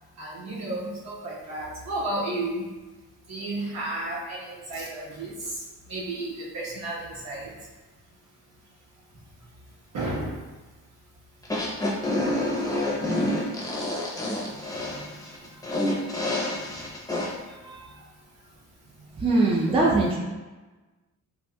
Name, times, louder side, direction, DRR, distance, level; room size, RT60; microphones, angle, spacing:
voice 1, 0.2-2.7 3.3-7.7 9.4-9.5 9.9-10.5 12.0-12.1 14.2-15.7 16.1-16.8 17.4-18.6 18.8-19.2, right 2 dB, 60° right, -6 dB, 1.2 m, -34 dB
sound 1, 11.4-17.3, left 1 dB, 10° left, 0.8 m, -28 dB
voice 2, 19.2-20.2, right 2 dB, 20° right, -4 dB, 0.5 m, -21 dB
4.1 x 2.4 x 2.3 m, 1.2 s
cardioid pair, 90°, 30 cm